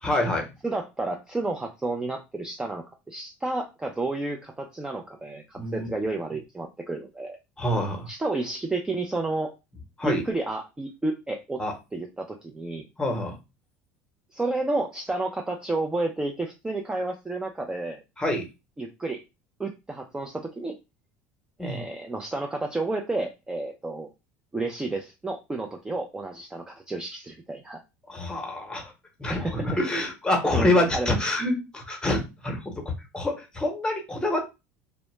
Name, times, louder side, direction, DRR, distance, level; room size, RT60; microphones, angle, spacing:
voice 1, 0.0-0.5 5.5-5.9 7.6-8.1 10.0-10.2 11.6-11.7 13.0-13.4 18.2-18.4 21.6-21.8 28.1-28.8 29.2-34.4, left 1 dB, 10° left, 2 dB, 0.9 m, -26 dB
voice 2, 0.6-7.4 8.1-9.5 10.0-11.6 11.9-12.9 14.3-18.0 18.8-19.2 19.6-20.7 21.6-24.1 24.5-27.8 29.3-29.5 30.5-31.2, right 2 dB, 10° right, 2 dB, 0.4 m, -31 dB
2.0 x 2.0 x 3.1 m, 0.25 s
supercardioid pair, 95°, 7 cm